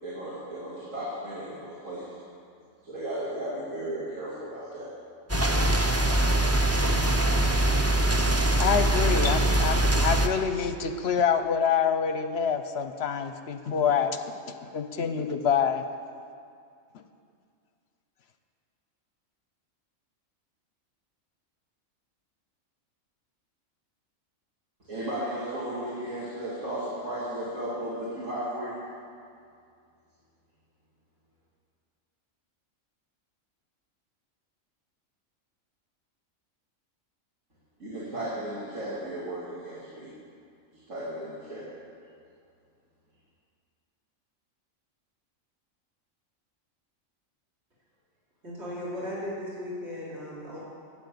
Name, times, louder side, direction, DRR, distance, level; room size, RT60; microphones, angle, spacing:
voice 1, 0.0-2.2 2.8-4.9 24.8-28.7 37.8-40.1 40.9-41.7, right 1 dB, 70° right, -9 dB, 2.9 m, -35 dB
sound 1, 5.3-10.3, right 1 dB, 15° right, 0.5 m, -23 dB
voice 2, 8.4-14.2 14.7-15.8, left 7 dB, 60° left, 8 dB, 0.9 m, -26 dB
voice 3, 48.4-50.6, left 1 dB, 55° right, -8 dB, 3.4 m, -36 dB
12.0 x 8.7 x 8.4 m, 2.3 s
omnidirectional pair, 1.4 m